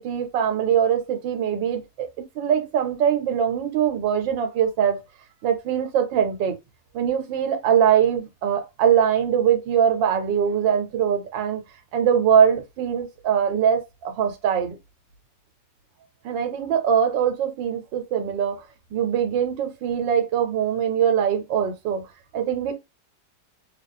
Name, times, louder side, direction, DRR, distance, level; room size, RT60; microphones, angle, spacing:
voice 1, 0.0-2.1 2.3-5.0 5.4-6.6 6.9-11.6 11.9-14.8 16.2-18.6 18.9-22.1 22.3-22.7, right 8 dB, 85° right, 1.5 m, -22 dB
3.4 x 2.4 x 3.5 m
omnidirectional pair, 1.9 m